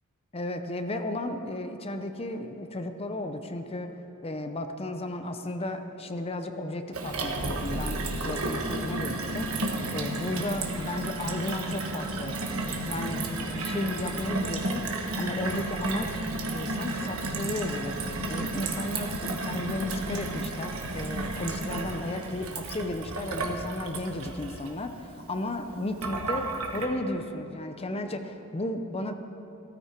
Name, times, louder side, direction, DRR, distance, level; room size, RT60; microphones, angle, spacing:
voice 1, 0.3-4.0 4.2-16.2 16.5-18.0 18.3-26.5 26.7-29.1, left 1 dB, 25° left, 7 dB, 0.7 m, -34 dB
Gurgling / Water tap faucet / Sink (filling or washing), 6.9-26.9, right 2 dB, 65° right, 1.4 m, -32 dB
16.5 x 13.5 x 4.5 m, 2.8 s
head